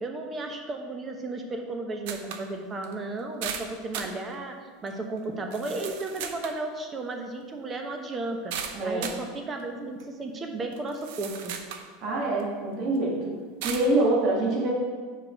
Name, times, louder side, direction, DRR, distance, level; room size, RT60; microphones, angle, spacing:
voice 1, 0.0-4.6 4.8-8.5 8.8-11.5, right 2 dB, 25° right, 4 dB, 1.0 m, -34 dB
sound 1, 2.1-2.5 2.8-2.9 3.4-4.2 4.9-5.0 5.5-6.6 8.5-9.2 10.0-10.1 10.7-11.9 12.4-12.5 13.6-13.9, right 8 dB, 70° right, 0.7 m, -36 dB
voice 2, 8.7-9.0 12.0-13.2 13.6-14.7, right 2 dB, 45° right, -4 dB, 1.9 m, -25 dB
5.0 x 4.7 x 5.9 m, 1.6 s
supercardioid pair, 125°, 0 cm